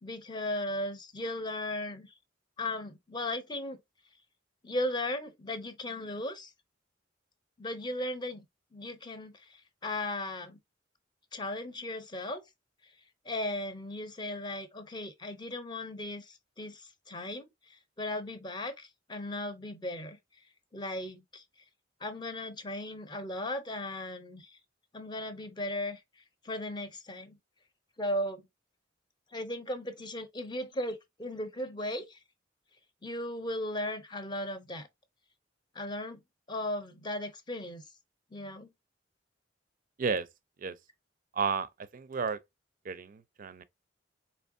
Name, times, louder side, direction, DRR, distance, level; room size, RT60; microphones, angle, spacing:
voice 1, 0.0-2.1 2.6-3.8 4.6-6.5 7.6-8.5 8.7-10.6 11.3-12.4 13.2-20.2 20.7-21.4 22.0-24.6 24.9-26.0 26.4-27.4 28.0-28.4 29.3-32.2 33.0-34.9 35.7-36.2 36.5-37.8 38.3-38.7, left 1 dB, 25° left, 0.6 m, -36 dB
voice 2, 41.3-42.4 42.8-43.6, right 5 dB, 45° right, 0.4 m, -32 dB
4.4 x 2.9 x 2.5 m
head